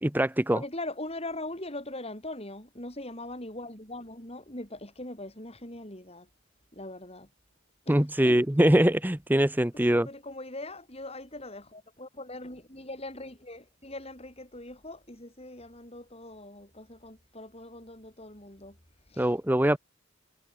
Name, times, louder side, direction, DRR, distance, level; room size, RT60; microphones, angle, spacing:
voice 1, 0.0-0.6 7.9-10.1 19.2-19.8, right 1 dB, 10° right, 0.8 m, -23 dB
voice 2, 0.5-6.3 6.7-7.3 7.9-8.0 8.2-8.4 9.9-18.8 19.1-19.3, left 1 dB, 30° left, 6.5 m, -41 dB
head